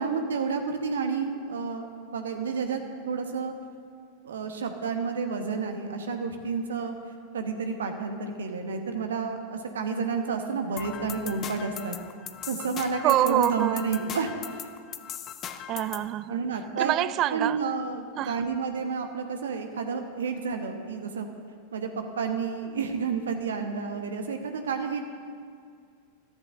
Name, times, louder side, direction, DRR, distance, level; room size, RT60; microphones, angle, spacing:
voice 1, 0.0-3.5 4.2-6.9 7.3-12.0 12.5-14.7 16.3-16.9 17.3-21.3 21.7-25.0, right 5 dB, 65° right, 5 dB, 1.3 m, -30 dB
sound 1, 10.8-16.1, left 9 dB, 30° left, 0.7 m, -39 dB
voice 2, 13.0-13.9 15.7-16.4 16.8-17.6 18.2-18.4, right 14 dB, 35° right, 17 dB, 0.3 m, -26 dB
21.0 x 13.5 x 2.7 m, 2.2 s
figure-of-eight pair, 90°, 0 cm